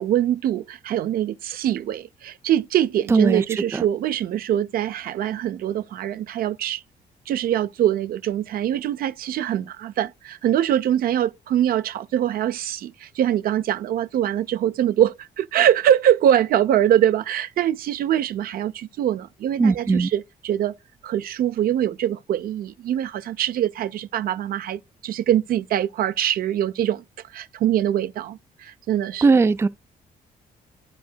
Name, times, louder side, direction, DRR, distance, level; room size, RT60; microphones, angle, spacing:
voice 1, 0.0-6.8 7.3-20.7 21.0-27.0 27.3-29.2, right 11 dB, 70° right, 0.5 m, -23 dB
voice 2, 3.1-3.4 3.7-3.9 19.6-20.1 29.2-29.7, right 4 dB, 15° right, 0.3 m, -18 dB
11.0 x 5.2 x 2.2 m
cardioid pair, 125°, 16 cm